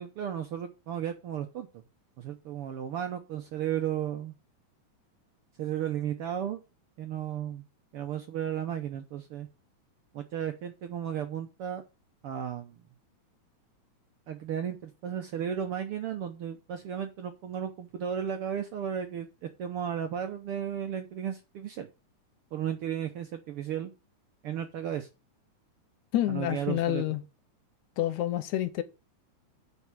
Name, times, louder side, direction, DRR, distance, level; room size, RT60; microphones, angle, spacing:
voice 1, 0.0-1.7 2.2-4.3 5.6-6.6 7.0-7.6 7.9-9.5 10.1-11.8 12.2-12.8 14.3-21.9 22.5-23.9 24.4-25.1 26.3-27.0, right 9 dB, 70° right, 1.4 m, -34 dB
voice 2, 26.1-27.2 28.0-28.8, left 13 dB, 75° left, 2.1 m, -28 dB
8.0 x 5.4 x 7.4 m
omnidirectional pair, 3.5 m